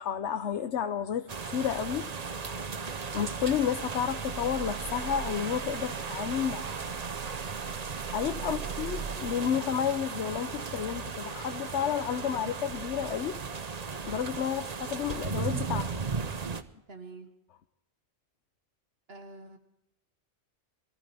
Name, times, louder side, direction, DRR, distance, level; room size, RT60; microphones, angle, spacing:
voice 1, 0.0-2.9 3.1-6.6 8.1-13.8 14.1-16.0, left 8 dB, 85° left, 8 dB, 1.1 m, -31 dB
sound 1, 1.3-16.6, right 5 dB, 40° right, 0.9 m, -36 dB
voice 2, 8.4-8.8 12.2-12.5 16.9-17.3 19.1-19.6, right 3 dB, 65° right, 6 dB, 1.6 m, -46 dB
24.5 x 14.5 x 3.4 m, 0.81 s
omnidirectional pair, 1.1 m